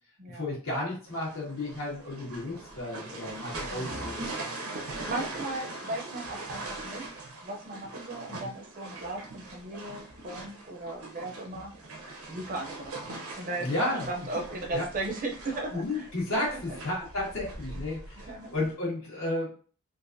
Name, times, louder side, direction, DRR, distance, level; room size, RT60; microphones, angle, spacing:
voice 1, 0.3-4.3 8.3-8.5 13.6-14.1 14.7-14.8 15.7-19.5, left 1 dB, 75° left, -4 dB, 1.6 m, -33 dB
sound 1, 1.1-18.7, right 2 dB, 80° right, 0.8 m, -41 dB
voice 2, 3.7-4.1 5.1-7.1 7.4-11.7 12.3-13.0 13.4-16.1 16.4-16.6 18.3-18.5, right 2 dB, 40° right, 2 dB, 0.5 m, -37 dB
3.8 x 2.5 x 2.6 m, 0.41 s
head